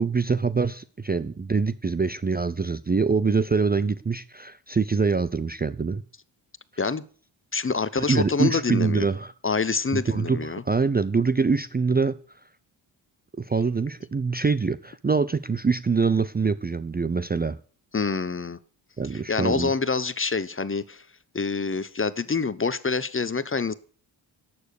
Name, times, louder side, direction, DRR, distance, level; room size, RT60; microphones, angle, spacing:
voice 1, 0.0-6.0 8.0-9.3 9.9-12.2 13.4-17.6 19.0-19.7, right 4 dB, 20° right, 15 dB, 0.5 m, -24 dB
voice 2, 7.5-9.1 9.4-10.6 17.9-18.6 19.1-21.0 21.3-23.7, left 4 dB, 25° left, 17 dB, 0.8 m, -26 dB
11.5 x 7.2 x 6.6 m, 0.43 s
cardioid pair, 50°, 49 cm